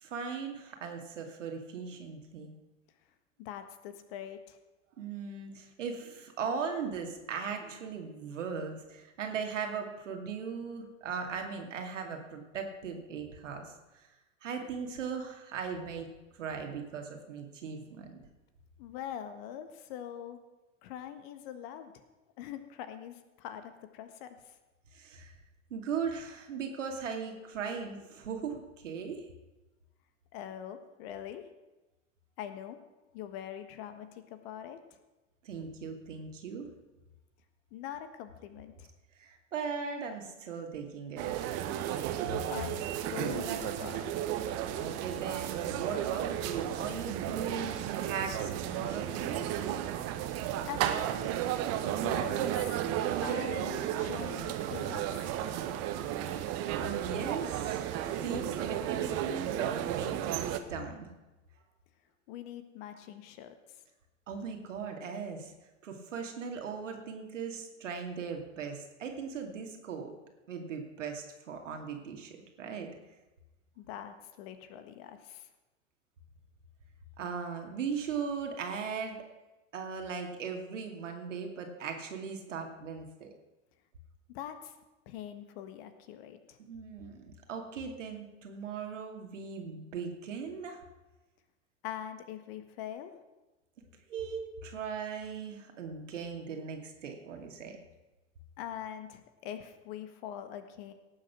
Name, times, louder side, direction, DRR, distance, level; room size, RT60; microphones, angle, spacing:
voice 1, 0.0-2.5 5.0-13.6 14.4-16.1 16.3-18.1 24.9-25.3 25.7-29.2 35.4-36.7 39.2-41.4 44.7-49.5 53.5-53.7 56.9-57.8 58.2-60.4 60.7-61.1 64.3-65.5 65.8-70.1 70.5-72.9 77.2-79.2 79.7-83.3 86.6-90.8 94.1-97.8, right 6 dB, 70° right, 3 dB, 2.5 m, -38 dB
voice 2, 3.4-4.6 18.8-20.4 20.8-21.9 22.4-24.5 30.3-31.4 32.4-32.8 33.1-34.8 37.7-38.9 42.5-44.1 50.0-50.3 50.7-51.3 51.8-52.8 53.2-55.3 62.3-63.5 73.8-75.5 84.3-84.7 85.0-86.6 91.8-93.1 98.6-100.9, left 10 dB, 50° left, 9 dB, 1.6 m, -43 dB
sound 1, 41.2-60.6, right 11 dB, 40° right, 1.2 m, -33 dB
18.0 x 7.6 x 6.0 m, 1.1 s
figure-of-eight pair, 90°, 39 cm